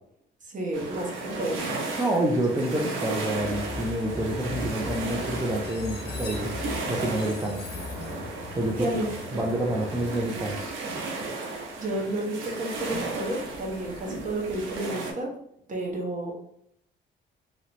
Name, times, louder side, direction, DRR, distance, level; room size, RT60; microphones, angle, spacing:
voice 1, 0.5-1.6 8.8-9.1 11.8-15.3 15.7-16.3, right 1 dB, 40° right, 0 dB, 1.1 m, -31 dB
sound 1, 0.7-15.1, right 3 dB, 85° right, 0.7 m, -35 dB
voice 2, 2.0-6.6 6.9-7.7 8.5-8.9 9.3-10.7, right 1 dB, 15° right, -1 dB, 0.5 m, -28 dB
Train, 3.3-11.3, left 3 dB, 55° left, 0.6 m, -39 dB
3.0 x 2.7 x 3.0 m, 0.73 s
cardioid pair, 90°, 20 cm